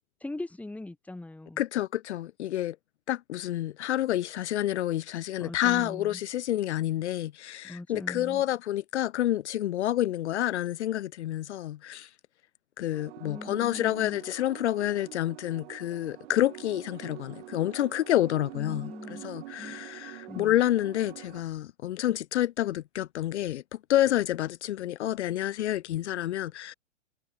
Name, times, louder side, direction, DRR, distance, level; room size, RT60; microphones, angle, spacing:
voice 1, 0.2-1.6 5.4-6.2 7.6-8.4 13.2-14.2 18.5-19.2 19.5-19.9 20.3-20.5, left 2 dB, 5° left, 2.7 m, -40 dB
voice 2, 1.6-2.8 3.1-12.1 12.8-23.6 23.9-26.7, left 13 dB, 60° left, 1.1 m, -29 dB
sound 1, 12.9-21.4, right 17 dB, 50° right, 5.4 m, -46 dB
hypercardioid pair, 130°, 38 cm